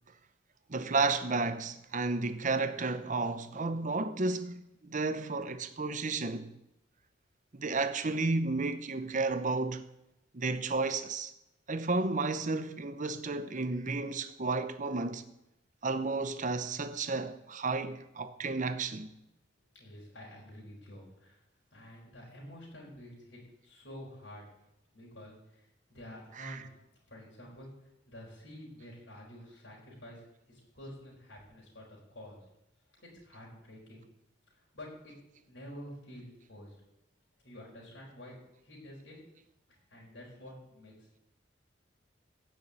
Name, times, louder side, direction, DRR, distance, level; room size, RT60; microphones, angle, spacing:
voice 1, 0.7-6.5 7.5-9.8 10.3-11.3 11.7-15.2 15.8-19.1 26.4-26.6, right 3 dB, 45° right, 0.9 m, -32 dB
voice 2, 19.7-21.4 21.7-24.5 24.9-26.7 27.1-27.7 28.1-32.4 33.0-34.0 34.5-35.1 35.4-36.7 37.4-39.2 39.7-41.2, equal, 70° left, 4.7 m, -49 dB
15.5 x 5.6 x 8.7 m
head